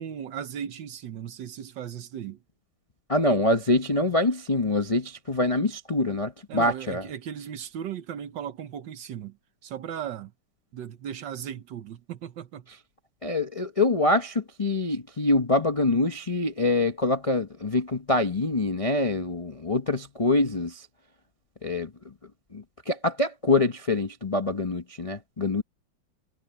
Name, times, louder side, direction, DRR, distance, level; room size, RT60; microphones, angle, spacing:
voice 1, 0.0-2.4 6.5-9.4 9.6-10.3 10.7-12.7, right 9 dB, 65° right, 1.5 m, -37 dB
voice 2, 3.1-7.0 13.2-20.9 21.6-22.1 22.5-25.6, left 2 dB, 45° left, 0.4 m, -25 dB
omnidirectional pair, 2.4 m